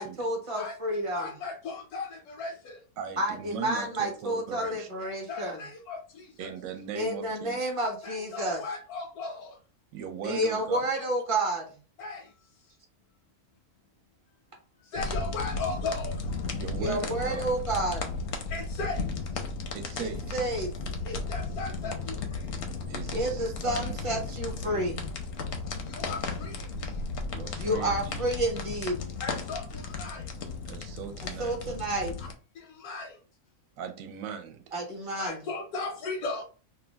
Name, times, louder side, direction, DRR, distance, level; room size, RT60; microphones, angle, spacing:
voice 1, 0.0-1.3 3.2-5.6 6.9-8.6 10.2-11.8 16.8-18.1 20.0-20.7 23.1-25.0 27.6-29.1 31.4-32.1 34.7-35.4, right 1 dB, 30° right, 0.6 m, -30 dB
voice 2, 0.6-2.8 5.0-6.5 8.0-9.5 12.0-12.2 14.9-16.4 18.5-19.0 21.0-22.2 25.9-26.9 28.6-28.7 29.2-30.2 32.8-33.1 35.2-36.4, left 3 dB, 85° left, 1.1 m, -37 dB
voice 3, 3.0-4.9 6.4-7.7 9.9-10.8 16.5-17.5 19.7-20.4 22.9-24.8 27.3-28.3 30.7-31.6 33.8-34.6, right 8 dB, 75° right, 1.0 m, -39 dB
sound 1, 15.0-32.3, left 3 dB, 65° left, 0.7 m, -35 dB
2.7 x 2.1 x 3.2 m
omnidirectional pair, 1.5 m